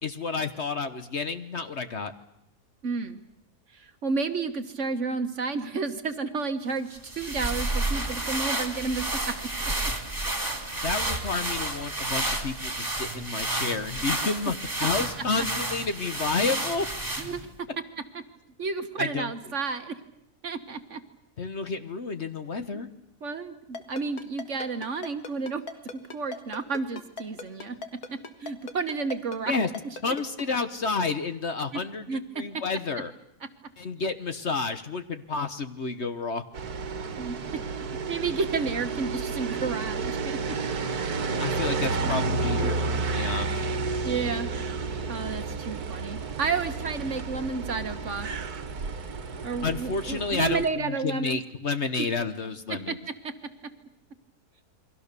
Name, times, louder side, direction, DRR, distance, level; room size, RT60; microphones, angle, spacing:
voice 1, 0.0-2.1 10.8-16.9 19.0-19.3 21.4-22.9 29.5-29.7 30.0-33.1 33.8-36.4 41.4-43.7 49.6-53.0, left 4 dB, 45° left, 10 dB, 1.3 m, -30 dB
voice 2, 2.8-3.2 3.7-9.7 17.2-17.7 18.1-18.2 18.6-20.0 20.4-21.0 22.7-22.8 23.2-25.6 26.1-27.8 28.1-29.5 31.7-31.8 32.1-32.6 37.2-37.4 38.1-40.6 42.0-42.1 42.6-42.8 44.0-44.5 45.1-48.3 49.4-51.4 52.0-52.1 52.7-53.3, right 4 dB, 50° right, 9 dB, 1.6 m, -31 dB
sound 1, 6.9-17.6, right 2 dB, 25° right, 3.0 m, -31 dB
Ringtone, 23.7-30.4, left 4 dB, 65° left, 2.2 m, -38 dB
sound 2, 36.5-50.7, right 4 dB, 70° right, 1.9 m, -31 dB
29.0 x 23.0 x 6.8 m, 0.78 s
omnidirectional pair, 1.7 m